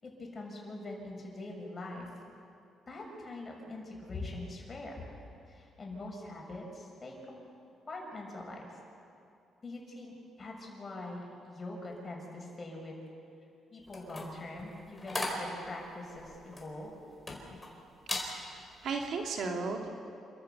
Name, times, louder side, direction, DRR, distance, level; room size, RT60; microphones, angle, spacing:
voice 1, 0.0-2.1 2.9-5.1 5.5-7.4 7.9-8.7 9.6-13.0 13.7-16.9, left 2 dB, 30° left, 0 dB, 6.3 m, -43 dB
sound 1, 13.9-17.7 18.0-18.3 18.8-19.1, left 2 dB, 15° left, 4.5 m, -38 dB
voice 2, 18.2-19.9, right 4 dB, 65° right, 2 dB, 2.5 m, -36 dB
28.0 x 14.0 x 6.9 m, 2.7 s
cardioid pair, 90°, 0 cm